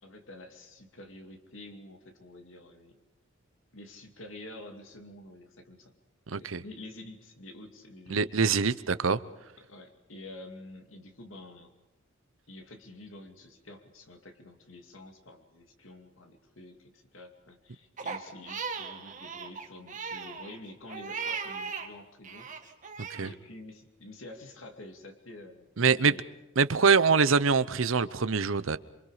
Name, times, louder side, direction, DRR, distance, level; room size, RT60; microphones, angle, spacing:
voice 1, 0.0-3.0 3.7-5.9 6.4-8.3 9.6-11.7 12.5-22.5 23.2-26.2, left 2 dB, 75° left, 2.5 m, -48 dB
voice 2, 6.3-6.6 8.1-9.2 23.1-23.3 25.8-26.1 26.6-28.8, right 5 dB, 80° right, 0.8 m, -24 dB
Crying sobbing, 18.0-21.9 22.2-23.3, right 5 dB, 40° right, 2.0 m, -38 dB
27.0 x 24.5 x 4.9 m
head